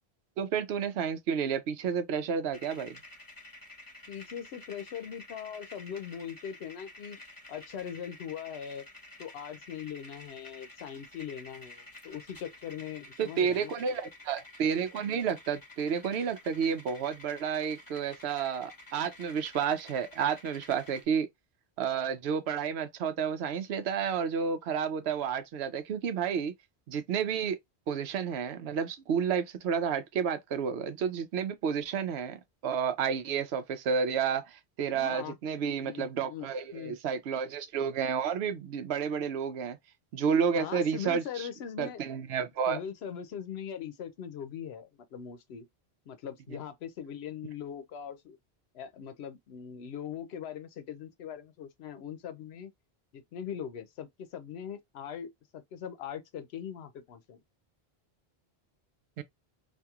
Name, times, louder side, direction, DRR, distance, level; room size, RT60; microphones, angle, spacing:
voice 1, 0.4-3.0 13.2-21.3 21.8-26.5 26.9-27.6 27.9-39.8 40.1-41.5 41.8-42.8 59.2-59.3, right 7 dB, 85° right, 0.9 m, -31 dB
sound 1, 2.5-21.1, left 2 dB, 20° left, 0.9 m, -51 dB
voice 2, 4.1-7.2 7.5-8.9 9.2-13.7 34.9-35.4 35.8-36.5 36.7-37.0 40.6-42.0 42.7-45.7 46.1-48.4 48.7-52.7 53.1-57.4, left 8 dB, 80° left, 0.9 m, -41 dB
2.8 x 2.5 x 2.4 m
omnidirectional pair, 1.0 m